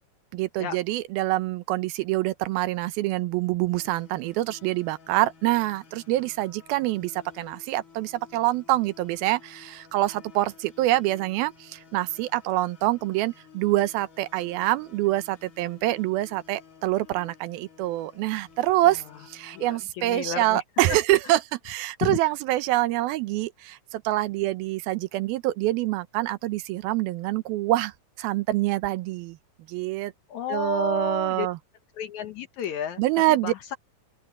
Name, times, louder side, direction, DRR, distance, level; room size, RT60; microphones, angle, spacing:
voice 1, 0.3-29.4 29.7-30.1 30.5-31.6 33.0-33.5, right 16 dB, 85° right, 2.7 m, -26 dB
sound 1, 3.7-19.8, left 6 dB, 45° left, 1.0 m, -53 dB
voice 2, 19.5-20.6 22.0-22.2 30.3-31.5 31.9-33.0 33.3-33.8, left 8 dB, 65° left, 2.0 m, -32 dB
open air
omnidirectional pair, 4.2 m